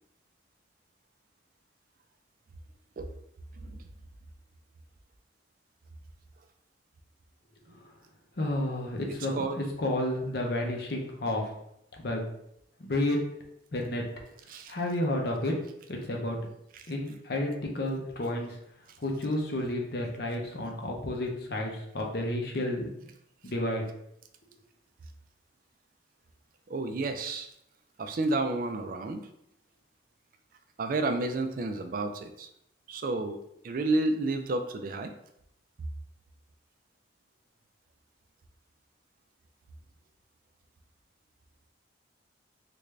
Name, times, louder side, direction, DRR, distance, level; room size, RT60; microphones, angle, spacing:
voice 1, 3.6-3.9 9.3-9.6 14.5-14.7 16.8-16.9 26.7-27.5 28.0-29.3 30.8-32.5 32.9-33.4 33.6-35.1, right 2 dB, 45° right, 7 dB, 0.3 m, -31 dB
voice 2, 8.4-11.4 12.0-12.2 12.8-13.2 13.7-14.0 14.7-15.5 15.9-16.4 16.9-18.6 19.0-23.1 23.4-23.9, left 1 dB, 55° left, 1 dB, 0.6 m, -31 dB
3.3 x 2.5 x 3.2 m, 0.76 s
head